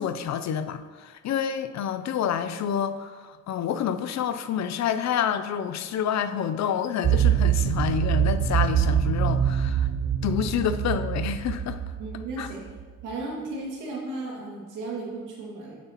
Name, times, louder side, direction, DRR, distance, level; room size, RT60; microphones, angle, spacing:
voice 1, 0.0-9.9 10.2-11.8 12.4-12.5, left 8 dB, 65° left, 10 dB, 0.6 m, -28 dB
sound 1, 7.0-12.8, right 10 dB, 30° right, 0.4 m, -24 dB
voice 2, 12.0-12.6 13.0-15.8, right 2 dB, 85° right, -3 dB, 2.3 m, -35 dB
8.8 x 7.6 x 3.0 m, 1.5 s
cardioid pair, 90°, 30 cm